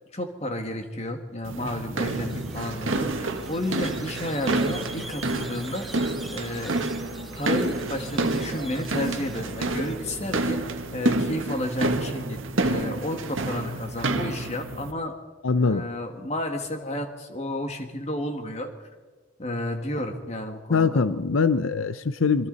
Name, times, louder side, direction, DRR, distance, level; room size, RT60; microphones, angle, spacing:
voice 1, 0.1-5.9 6.3-6.8 7.3-10.6 10.9-15.1 15.6-18.7 19.4-21.0, left 1 dB, 35° left, 5 dB, 2.0 m, -32 dB
sound 1, 1.5-14.9, right 2 dB, 80° right, 1.5 m, -29 dB
Squeak, 2.0-10.8, equal, ahead, 0.8 m, -42 dB
voice 2, 15.4-15.9 20.7-22.5, left 4 dB, 85° left, 13 dB, 0.7 m, -22 dB
26.5 x 24.0 x 4.1 m, 1.4 s
head